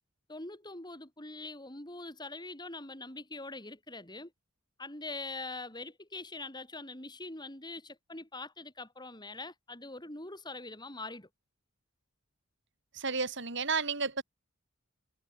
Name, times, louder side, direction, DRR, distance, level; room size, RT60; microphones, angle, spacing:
voice 1, 0.3-4.3 4.8-11.3, left 2 dB, 20° left, 7.5 m, -43 dB
voice 2, 12.9-14.2, right 5 dB, 60° right, 5.2 m, -32 dB
head